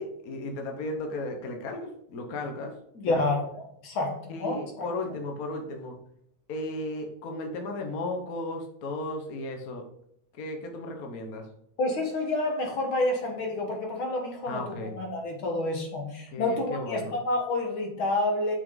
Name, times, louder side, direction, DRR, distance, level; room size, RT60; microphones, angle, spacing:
voice 1, 0.0-3.3 4.3-5.9 6.5-9.8 10.3-11.5 14.5-14.9 16.3-17.2, left 2 dB, 75° left, 4 dB, 0.8 m, -35 dB
voice 2, 3.0-3.4 3.8-4.9 11.8-14.6 15.0-18.6, left 2 dB, 50° left, 2 dB, 2.2 m, -28 dB
8.5 x 6.5 x 3.9 m, 0.72 s
omnidirectional pair, 3.4 m